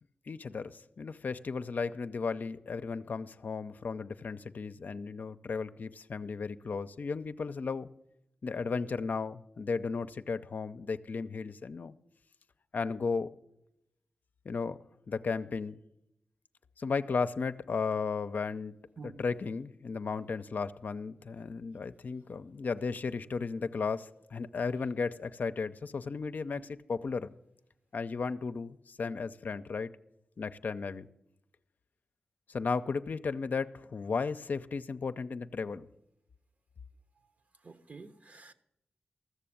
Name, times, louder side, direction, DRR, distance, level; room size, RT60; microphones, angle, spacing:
voice 1, 0.3-7.9 8.4-11.9 12.7-13.3 14.4-14.8 15.1-15.8 16.8-18.7 19.0-27.3 27.9-29.9 30.4-31.1 32.5-35.9, left 5 dB, 60° left, 0.6 m, -35 dB
voice 2, 37.6-38.5, right 4 dB, 50° right, 1.1 m, -49 dB
14.5 x 6.8 x 8.6 m
cardioid pair, 55°, 3 cm